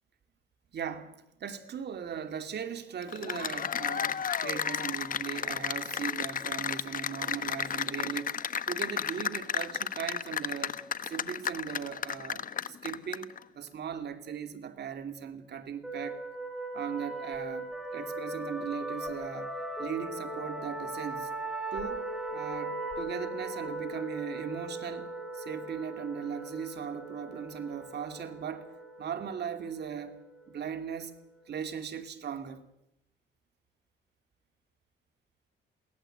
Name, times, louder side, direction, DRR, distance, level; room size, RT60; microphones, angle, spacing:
voice 1, 0.7-8.4 8.7-10.8 11.1-16.2 16.7-19.5 19.8-21.3 21.7-25.1 25.3-28.7 29.0-30.2 30.5-31.1 31.5-32.6, right 7 dB, 60° right, 2.7 m, -38 dB
Cheering / Applause, 3.0-13.4, left 7 dB, 45° left, 1.0 m, -33 dB
sound 1, 15.8-31.2, right 2 dB, ahead, 4.8 m, -39 dB
23.0 x 17.5 x 7.9 m
cardioid pair, 90°, 20 cm